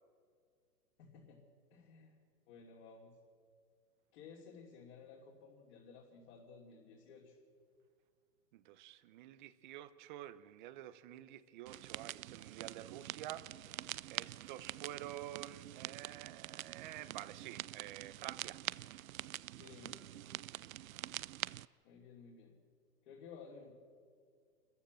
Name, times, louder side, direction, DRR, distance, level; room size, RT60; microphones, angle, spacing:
voice 1, 1.0-2.2 2.5-3.2 4.1-7.4 19.6-20.0 21.8-22.6 23.0-23.7, left 5 dB, 40° left, 3.1 m, -55 dB
voice 2, 8.5-18.6, right 13 dB, 30° right, 0.8 m, -49 dB
sound 1, 11.7-21.7, right 14 dB, 60° right, 0.5 m, -46 dB
26.0 x 14.5 x 7.7 m
hypercardioid pair, 140°, 48 cm